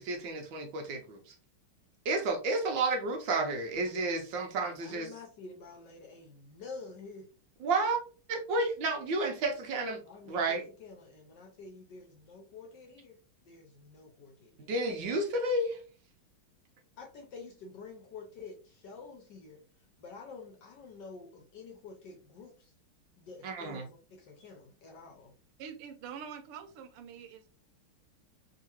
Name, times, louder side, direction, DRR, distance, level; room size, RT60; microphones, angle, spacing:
voice 1, 0.0-1.3 2.0-5.1 7.6-8.0 8.3-10.6 14.6-15.8 23.4-23.9, right 2 dB, 70° right, 1.3 m, -31 dB
voice 2, 4.7-7.3 10.1-13.2 13.4-14.7 17.0-19.6 20.0-22.7 23.2-25.3, left 4 dB, 65° left, 1.1 m, -49 dB
voice 3, 25.6-27.5, right 7 dB, 85° right, 1.6 m, -45 dB
3.7 x 2.8 x 2.9 m
omnidirectional pair, 2.4 m